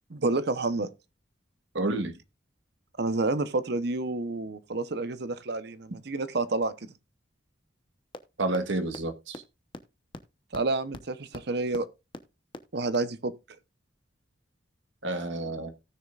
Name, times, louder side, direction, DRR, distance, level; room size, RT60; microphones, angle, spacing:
voice 1, 0.1-0.9 3.0-6.7 10.5-11.9 12.7-13.3, right 3 dB, 60° right, 0.9 m, -29 dB
voice 2, 1.7-2.1 8.4-9.4 15.0-15.7, right 2 dB, 90° right, 1.5 m, -29 dB
sound 1, 8.1-8.2 8.5-8.6 8.9-9.0 9.3-9.4 9.7-9.8 10.1-10.2 10.5-10.6 10.9-11.0 11.3-11.4 11.7-11.8 12.1-12.2 12.5-12.6 12.9-13.0, left 1 dB, 25° left, 0.9 m, -39 dB
18.0 x 6.5 x 2.4 m
head